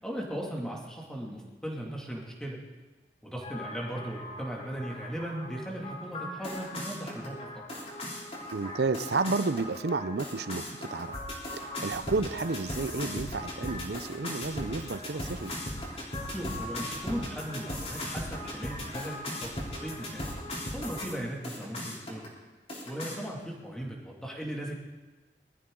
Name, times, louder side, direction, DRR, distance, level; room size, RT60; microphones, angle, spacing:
voice 1, 0.0-2.6 3.2-7.6 16.3-19.5 19.8-20.3 20.7-22.2 22.9-24.7, right 1 dB, 5° left, -2 dB, 2.4 m, -37 dB
sound 1, 3.4-21.1 21.4-22.3 22.7-23.2, left 1 dB, 35° left, 3.5 m, -38 dB
voice 2, 8.5-11.2 11.5-15.5, right 3 dB, 70° right, 13 dB, 0.6 m, -31 dB
21.5 x 13.0 x 3.8 m, 1.3 s
head